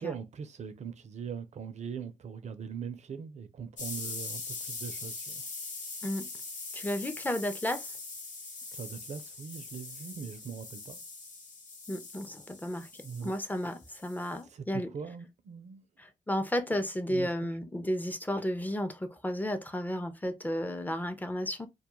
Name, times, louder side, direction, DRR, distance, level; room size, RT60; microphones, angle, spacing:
voice 1, 0.0-5.5 8.7-11.0 13.0-13.3 14.5-15.8 17.1-17.5, right 6 dB, 55° right, 0.5 m, -41 dB
sound 1, 3.8-14.4, left 3 dB, 65° left, 0.8 m, -42 dB
voice 2, 6.7-7.9 11.9-12.9 13.2-14.9 16.0-21.7, equal, 10° left, 0.5 m, -33 dB
2.2 x 2.1 x 2.9 m
cardioid pair, 55°, 14 cm